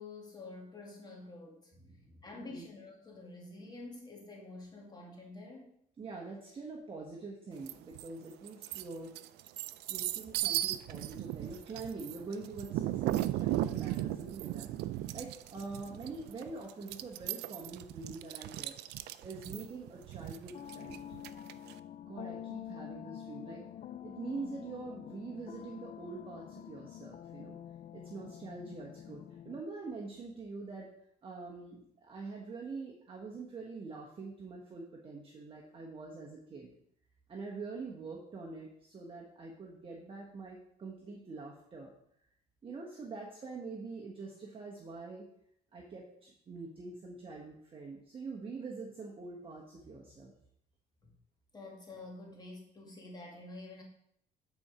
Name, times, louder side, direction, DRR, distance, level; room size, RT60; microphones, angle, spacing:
voice 1, 0.0-1.7 2.2-5.7 51.0-51.1 51.5-53.8, left 2 dB, 25° left, -1 dB, 2.1 m, -48 dB
voice 2, 1.8-2.7 6.0-9.1 9.9-14.7 15.1-18.7 19.2-21.0 22.1-23.6 24.0-27.6 27.9-30.9 31.2-36.7 37.3-41.9 42.6-45.3 45.7-50.3, right 4 dB, 30° right, -2 dB, 1.3 m, -45 dB
sound 1, 7.7-8.1 8.5-21.7, right 14 dB, 80° right, 0.4 m, -36 dB
sound 2, 20.5-29.6, left 10 dB, 45° left, 0.4 m, -47 dB
9.7 x 4.3 x 5.0 m, 0.70 s
cardioid pair, 110°, 17 cm